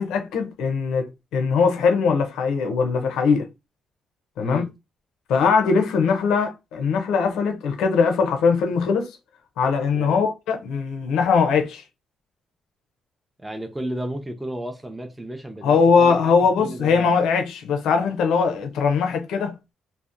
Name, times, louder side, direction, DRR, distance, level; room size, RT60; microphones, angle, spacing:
voice 1, 0.0-3.5 4.4-4.6 5.3-9.2 9.6-11.8 15.6-19.6, left 5 dB, 85° left, 0.5 m, -21 dB
voice 2, 9.9-10.2 13.4-17.2, right 1 dB, 10° right, 0.4 m, -33 dB
2.7 x 2.0 x 2.4 m
cardioid pair, 90°, 0 cm